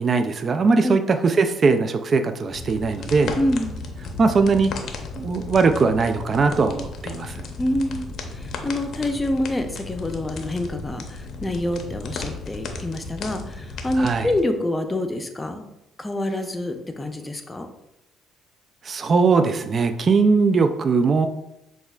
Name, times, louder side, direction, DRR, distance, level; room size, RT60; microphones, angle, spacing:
voice 1, 0.0-3.3 4.2-4.7 5.2-7.4 14.0-14.3 18.8-21.3, right 4 dB, 45° right, 8 dB, 0.3 m, -20 dB
sound 1, 2.5-14.4, left 3 dB, 65° left, 0.6 m, -35 dB
voice 2, 3.4-3.8 7.6-15.6 16.0-17.7, left 1 dB, 20° left, 5 dB, 0.6 m, -26 dB
6.2 x 2.4 x 2.3 m, 0.85 s
supercardioid pair, 75°, 0 cm